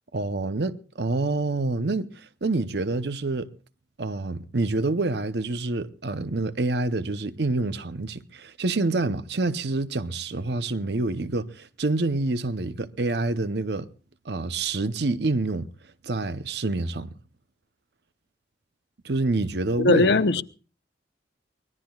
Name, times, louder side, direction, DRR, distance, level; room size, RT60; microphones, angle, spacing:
voice 1, 0.1-3.5 4.0-13.9 14.3-15.7 16.0-17.1 19.0-20.1, right 2 dB, 65° right, 0.8 m, -27 dB
voice 2, 19.8-20.4, left 2 dB, 65° left, 0.8 m, -19 dB
24.5 x 20.0 x 2.4 m
head